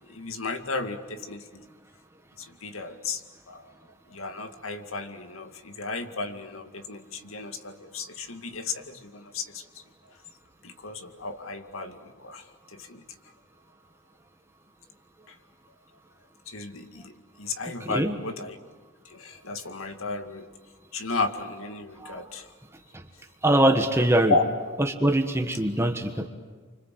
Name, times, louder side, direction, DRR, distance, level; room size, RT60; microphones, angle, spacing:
voice 1, 0.1-1.6 2.4-3.2 3.5-3.7 4.1-9.6 10.6-12.5 12.7-13.0 15.3-15.4 16.5-18.6 19.1-20.5 20.9-22.5 24.3-24.4, left 3 dB, 90° left, 7 dB, 2.2 m, -33 dB
voice 2, 17.8-18.1 22.0-22.2 22.9-23.0 23.4-24.3 24.8-26.3, right 1 dB, 15° right, 5 dB, 1.4 m, -23 dB
29.0 x 25.5 x 7.7 m, 1.5 s
head